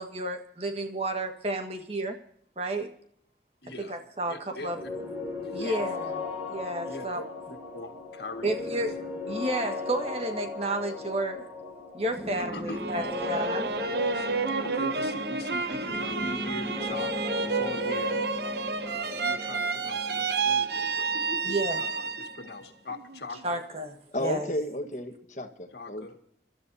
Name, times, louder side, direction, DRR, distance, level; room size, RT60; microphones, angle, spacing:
voice 1, 0.0-2.1 2.6-2.9 3.8-4.8 5.5-6.0 6.5-7.2 8.4-8.9 9.3-11.4 11.9-13.7 21.4-21.8 23.4-23.9 24.2-24.5, right 1 dB, 35° right, 5 dB, 1.7 m, -31 dB
voice 2, 3.6-3.9 4.3-4.9 5.4-5.9 6.9-8.8 12.4-12.8 14.1-14.3 14.6-17.1 17.4-18.2 18.9-23.6 25.7-26.2, left 2 dB, 70° left, 5 dB, 2.0 m, -41 dB
sound 1, 4.7-22.3, left 3 dB, 10° right, 6.4 m, -37 dB
sound 2, 12.7-22.5 22.9-23.6, right 4 dB, 70° right, 0.8 m, -30 dB
voice 3, 24.1-26.2, left 1 dB, 45° left, 6 dB, 1.4 m, -33 dB
28.0 x 13.0 x 2.8 m, 0.64 s
head